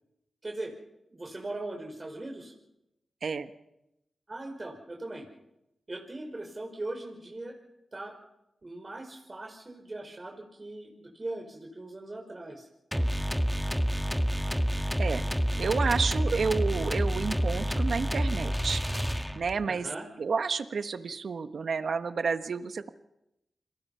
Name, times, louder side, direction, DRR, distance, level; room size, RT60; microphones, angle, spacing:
voice 1, 1.1-2.5 4.3-5.3 5.9-7.5 7.9-8.1 8.6-12.7 19.7-20.1, right 2 dB, 40° right, 2 dB, 5.4 m, -39 dB
sound 1, 12.9-19.6, equal, ahead, 1.8 m, -28 dB
voice 2, 15.6-18.8 19.3-19.9 20.2-22.9, right 5 dB, 75° right, 10 dB, 1.3 m, -30 dB
29.0 x 22.5 x 5.7 m, 0.89 s
cardioid pair, 45°, 0 cm